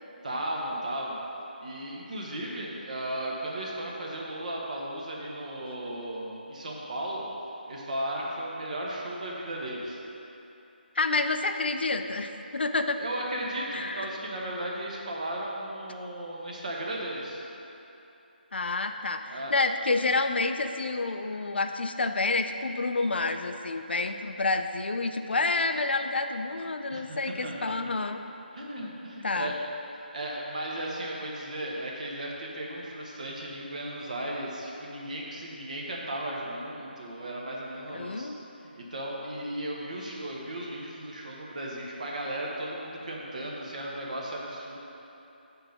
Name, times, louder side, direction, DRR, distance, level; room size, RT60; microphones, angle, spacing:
voice 1, 0.2-1.2 1.6-7.3 7.7-10.0 13.0-17.4 19.3-19.5 26.9-27.2 27.4-27.9 28.5-29.5 30.1-38.3 38.6-44.8, right 1 dB, 45° right, -3 dB, 1.2 m, -35 dB
voice 2, 11.0-13.0 13.7-14.2 18.5-28.2 29.2-29.5 37.9-38.4, left 3 dB, 80° left, 7 dB, 0.5 m, -29 dB
6.9 x 3.9 x 5.8 m, 3.0 s
figure-of-eight pair, 170°, 6 cm